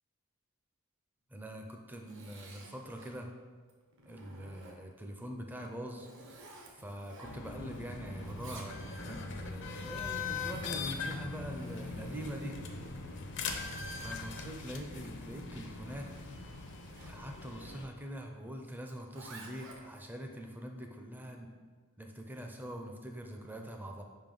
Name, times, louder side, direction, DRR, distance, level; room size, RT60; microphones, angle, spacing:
voice 1, 1.3-3.3 4.1-6.1 6.4-6.5 6.7-12.6 14.0-16.1 17.1-21.6 22.0-24.0, equal, 10° right, 2 dB, 0.5 m, -44 dB
Zipper (clothing), 1.6-3.2 3.7-5.0 5.6-7.8 8.0-9.2 10.1-17.2 18.8-20.1, right 2 dB, 55° right, 0.8 m, -54 dB
sound 1, 7.2-17.8, left 4 dB, 55° left, 0.6 m, -41 dB
5.2 x 3.7 x 5.3 m, 1.5 s
head